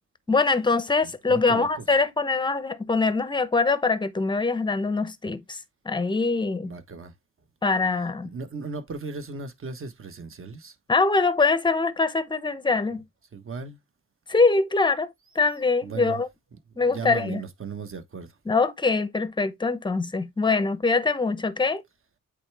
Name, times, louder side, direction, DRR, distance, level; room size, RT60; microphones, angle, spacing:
voice 1, 0.3-5.6 5.8-6.7 7.6-8.3 10.9-13.0 14.3-16.3 16.8-17.4 18.5-21.8, left 4 dB, 15° left, 0.8 m, -23 dB
voice 2, 1.0-1.8 6.6-7.1 8.2-10.7 13.3-13.8 15.8-16.2 16.8-18.4, right 4 dB, 35° right, 1.3 m, -37 dB
8.3 x 3.4 x 3.4 m
cardioid pair, 90°, 35 cm